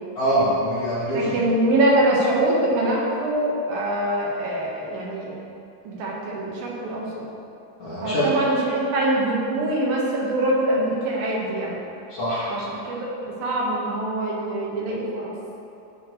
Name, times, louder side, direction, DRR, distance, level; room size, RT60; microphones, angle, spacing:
voice 1, 0.1-1.4 7.8-8.2 12.1-12.5, equal, 45° left, -11 dB, 2.6 m, -24 dB
voice 2, 1.1-5.4 5.8-7.2 8.0-11.8 12.5-15.3, right 1 dB, 75° right, -4 dB, 3.2 m, -24 dB
12.0 x 7.3 x 3.2 m, 2.7 s
omnidirectional pair, 4.3 m